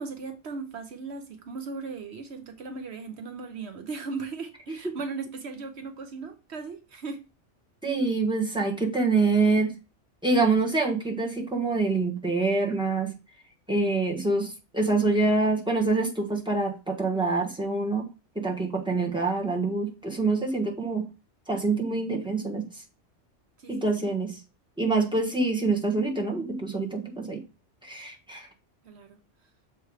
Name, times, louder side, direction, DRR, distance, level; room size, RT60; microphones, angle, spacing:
voice 1, 0.0-7.2 23.6-23.9 28.8-29.2, right 4 dB, 65° right, 1.0 m, -37 dB
voice 2, 7.8-9.7 10.2-13.1 13.7-18.1 18.3-21.0 21.5-22.6 23.7-24.4 24.8-27.4 27.8-28.5, right 3 dB, 5° right, 1.3 m, -26 dB
6.8 x 3.3 x 4.8 m
omnidirectional pair, 1.2 m